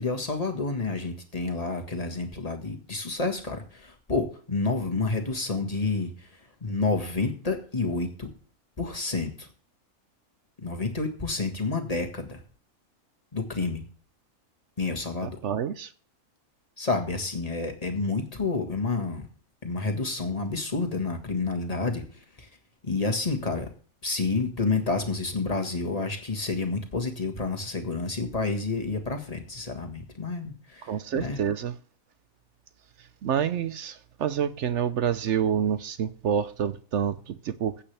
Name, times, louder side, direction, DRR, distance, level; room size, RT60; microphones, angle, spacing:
voice 1, 0.0-6.3 6.6-8.3 8.8-9.5 10.6-12.4 13.3-13.8 14.8-15.4 16.8-19.3 19.6-22.0 22.4-22.5 22.8-23.7 24.0-31.4, left 3 dB, 25° left, 1.6 m, -29 dB
voice 2, 15.2-15.9 30.9-31.7 33.2-37.8, right 8 dB, 65° right, 0.8 m, -28 dB
15.5 x 8.4 x 3.4 m
omnidirectional pair, 1.5 m